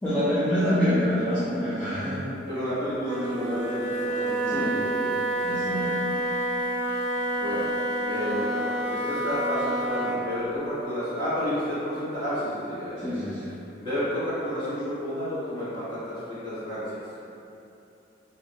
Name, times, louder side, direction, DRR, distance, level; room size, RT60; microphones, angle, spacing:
voice 1, 0.0-2.2 4.4-4.8 5.4-6.0 13.0-13.5, equal, 5° left, -13 dB, 0.4 m, -26 dB
voice 2, 2.5-5.1 5.7-5.8 7.4-7.6 8.1-13.1 13.8-16.8, equal, 25° left, -14 dB, 1.2 m, -31 dB
Wind instrument woodwind instrument, 3.0-10.2, right 1 dB, 70° right, 0.5 m, -28 dB
2.4 x 2.4 x 2.8 m, 2.7 s
head